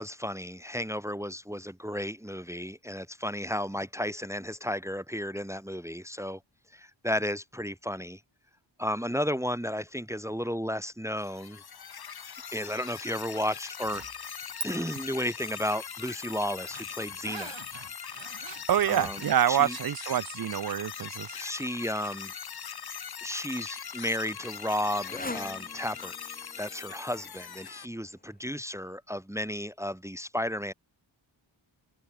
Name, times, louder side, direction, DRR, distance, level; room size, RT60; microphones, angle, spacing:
voice 1, 0.0-6.4 6.7-8.2 8.8-11.6 12.5-14.0 14.6-17.6 18.9-19.2 19.5-19.8 21.4-22.3 23.2-26.2 26.6-30.7, equal, 5° right, 1.1 m, -33 dB
sound 1, 11.2-27.9, left 7 dB, 50° left, 0.8 m, -41 dB
Zipper (clothing), 13.8-14.7 15.0-19.3, right 5 dB, 70° right, 2.8 m, -43 dB
voice 2, 18.7-21.4, right 10 dB, 50° right, 0.5 m, -26 dB
Motorcycle, 23.1-28.5, left 2 dB, 20° left, 1.4 m, -45 dB
wide cardioid pair, 85°, 47 cm